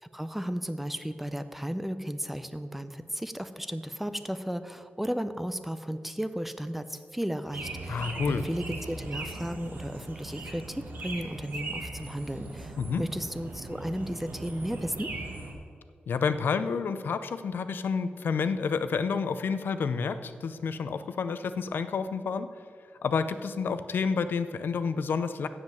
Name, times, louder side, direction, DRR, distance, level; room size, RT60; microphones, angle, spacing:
voice 1, 0.0-15.1, equal, 5° right, 11 dB, 0.4 m, -34 dB
sound 1, 7.5-15.5, right 2 dB, 60° right, 1.3 m, -39 dB
voice 2, 7.9-8.4 12.8-13.0 16.1-22.5 23.0-25.5, left 5 dB, 70° left, 11 dB, 0.5 m, -29 dB
7.4 x 7.3 x 7.8 m, 2.1 s
wide cardioid pair, 140°, 4 cm